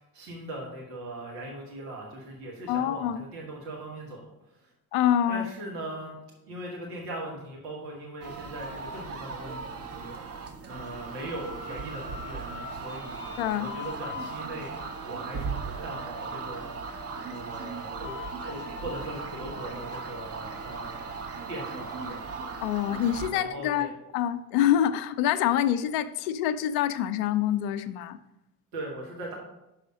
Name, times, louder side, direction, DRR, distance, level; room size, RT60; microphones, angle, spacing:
voice 1, 0.0-4.3 4.6-4.7 5.3-6.2 6.4-13.3 13.6-14.7 15.0-16.8 17.2-21.1 21.5-22.3 23.3-23.9 28.7-29.4, right 1 dB, 80° right, -2 dB, 1.4 m, -40 dB
voice 2, 2.7-3.2 4.9-5.4 13.4-13.7 22.6-28.2, left 10 dB, 65° left, 12 dB, 0.6 m, -26 dB
sound 1, 8.2-23.3, right 4 dB, 30° right, 0.8 m, -38 dB
sound 2, 11.2-16.5 16.9-22.2, left 6 dB, 20° left, 0.8 m, -46 dB
6.1 x 4.9 x 5.2 m, 0.90 s
figure-of-eight pair, 50°, 49 cm